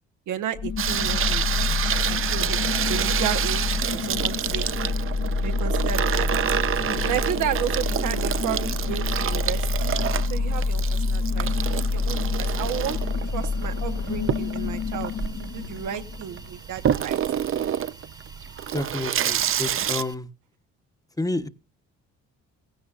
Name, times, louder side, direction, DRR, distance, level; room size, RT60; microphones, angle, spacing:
voice 1, 0.3-2.6 2.9-4.7 5.4-6.5 7.0-10.0 10.3-11.5 11.8-13.0 13.3-15.1 15.4-17.2, right 10 dB, 80° right, 1.2 m, -32 dB
sound 1, 0.5-16.5, left 4 dB, 50° left, 1.0 m, -27 dB
Water tap faucet / Sink (filling or washing), 0.8-20.0, right 9 dB, 45° right, 0.6 m, -28 dB
Hiss, 12.3-20.1, right 2 dB, 15° right, 1.2 m, -49 dB
voice 2, 18.7-20.3 21.2-21.5, left 2 dB, 10° left, 1.1 m, -29 dB
16.0 x 15.5 x 2.5 m
cardioid pair, 90°, 30 cm